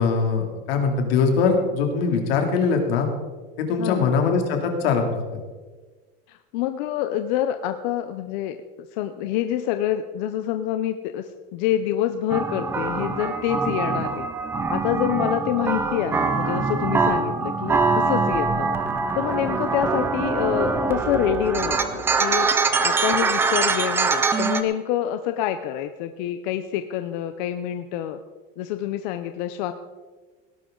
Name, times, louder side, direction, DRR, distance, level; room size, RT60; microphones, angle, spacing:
voice 1, 0.0-3.1 3.6-5.2, left 5 dB, 80° left, 3 dB, 2.9 m, -22 dB
voice 2, 3.8-4.1 6.3-8.6 8.9-14.3 14.7-18.7 19.2-28.2 28.6-29.7, left 11 dB, 50° left, 9 dB, 0.7 m, -27 dB
sound 1, 12.3-24.6, right 4 dB, 10° right, 0.4 m, -23 dB
17.5 x 12.0 x 3.8 m, 1.4 s
supercardioid pair, 175°, 29 cm